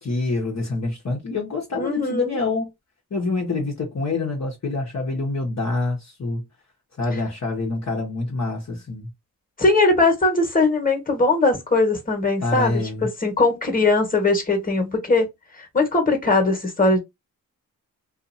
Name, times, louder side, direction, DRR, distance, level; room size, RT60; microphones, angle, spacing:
voice 1, 0.0-2.7 3.1-6.4 7.0-9.1 12.4-13.1, left 3 dB, 45° left, 1.0 m, -26 dB
voice 2, 1.7-2.3 9.6-15.3 15.6-17.0, left 3 dB, 20° left, 1.3 m, -20 dB
2.6 x 2.6 x 2.6 m
cardioid pair, 60°, 37 cm